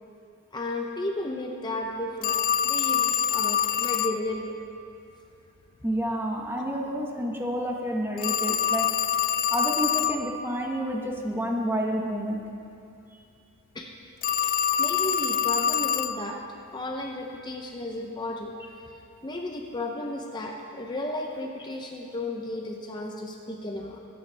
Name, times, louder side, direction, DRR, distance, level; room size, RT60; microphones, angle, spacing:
voice 1, 0.5-2.3 2.6-4.6 6.5-6.8 13.7-13.9 14.4-16.4 16.7-18.7 19.2-24.0, left 1 dB, 20° left, 1 dB, 0.7 m, -34 dB
Telephone, 2.2-4.2 8.2-10.2 14.2-16.2, left 9 dB, 40° left, 0.3 m, -25 dB
voice 2, 5.8-8.9 9.5-12.4, equal, 10° right, 0 dB, 1.0 m, -29 dB
22.5 x 8.6 x 3.4 m, 2.6 s
head